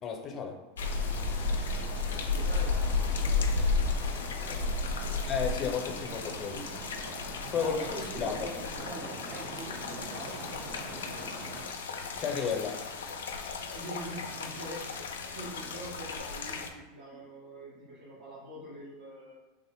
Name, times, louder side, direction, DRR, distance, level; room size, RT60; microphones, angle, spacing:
voice 1, 0.0-0.6 5.3-6.7 7.5-7.8 8.2-8.5 12.2-12.8, left 6 dB, 35° left, 3 dB, 0.6 m, -32 dB
sound 1, 0.8-16.7, left 4 dB, 90° left, 0.3 m, -33 dB
sound 2, 0.8-11.6, right 2 dB, 50° right, 1.2 m, -44 dB
voice 2, 2.1-3.9 4.3-5.2 7.5-11.4 13.7-14.9 15.3-19.4, right 1 dB, 80° right, -9 dB, 1.0 m, -45 dB
sound 3, 9.5-15.1, right 2 dB, 30° right, 0.6 m, -55 dB
3.5 x 2.1 x 3.5 m, 1.2 s
hypercardioid pair, 100°, 0 cm